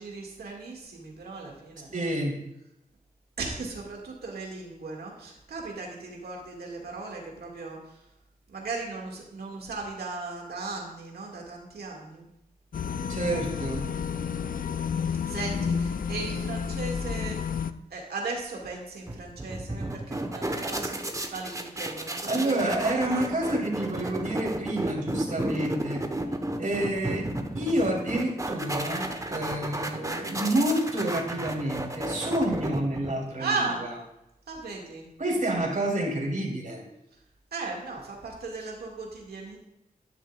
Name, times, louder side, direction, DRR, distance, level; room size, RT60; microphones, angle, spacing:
voice 1, 0.0-1.9 3.4-7.8 8.5-12.3 15.2-17.4 17.9-23.6 33.4-33.8 34.5-35.1 37.5-39.6, right 3 dB, 90° right, -1 dB, 2.2 m, -37 dB
voice 2, 1.9-2.4 13.1-13.9 22.2-26.0 26.6-27.3 27.5-34.0 35.2-36.8, right 1 dB, 55° right, -2 dB, 3.4 m, -28 dB
sound 1, 12.7-17.7, left 6 dB, 60° left, 0.5 m, -30 dB
sound 2, 19.1-33.4, right 1 dB, 20° right, 1.2 m, -33 dB
12.0 x 10.5 x 2.5 m, 0.87 s
cardioid pair, 45°, 16 cm